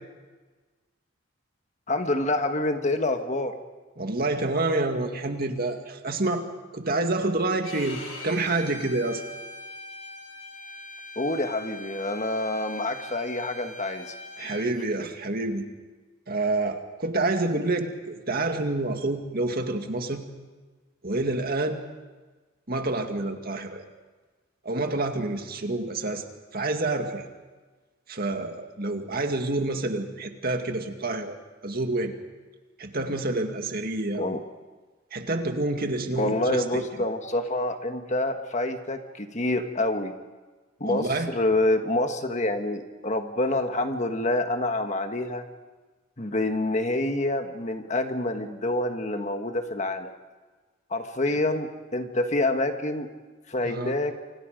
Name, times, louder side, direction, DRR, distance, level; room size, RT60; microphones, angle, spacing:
voice 1, 1.9-3.6 11.1-14.1 34.2-34.4 36.2-40.1 40.8-45.4 46.2-50.1 50.9-53.1 53.5-54.2, left 2 dB, 35° left, 6 dB, 1.5 m, -27 dB
voice 2, 4.0-6.4 6.7-9.2 14.4-15.7 16.3-20.2 21.0-21.8 22.7-23.8 24.6-26.2 26.5-27.3 28.1-31.4 31.6-32.1 32.8-34.4 35.1-36.8 40.8-41.3 53.6-53.9, right 2 dB, 45° right, 5 dB, 2.1 m, -28 dB
Bowed string instrument, 7.6-14.6, left 2 dB, 70° left, 7.3 m, -41 dB
29.0 x 25.5 x 5.2 m, 1.3 s
head